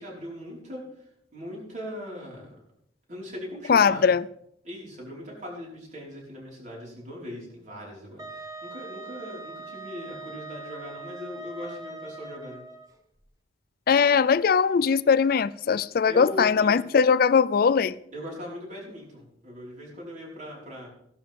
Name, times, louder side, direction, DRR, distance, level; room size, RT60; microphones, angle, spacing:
voice 1, 0.0-2.5 3.1-4.1 4.6-12.6 16.1-16.8 18.1-20.9, equal, 45° right, 4.9 m, -40 dB
voice 2, 3.7-4.2 13.9-18.0, left 6 dB, 55° left, 0.4 m, -20 dB
Wind instrument woodwind instrument, 8.2-12.9, right 2 dB, 20° right, 1.2 m, -41 dB
16.5 x 11.5 x 3.7 m
head